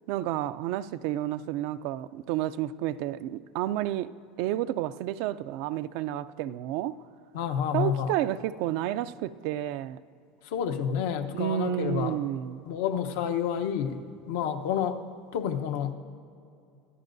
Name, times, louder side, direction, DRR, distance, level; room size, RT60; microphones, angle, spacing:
voice 1, 0.1-4.1 4.4-7.0 7.7-10.0 11.3-12.6, right 13 dB, 65° right, 0.4 m, -30 dB
voice 2, 7.3-8.1 10.4-12.2 12.6-15.0 15.3-15.9, left 8 dB, 85° left, 0.9 m, -29 dB
25.5 x 14.0 x 2.7 m
supercardioid pair, 135°, 0 cm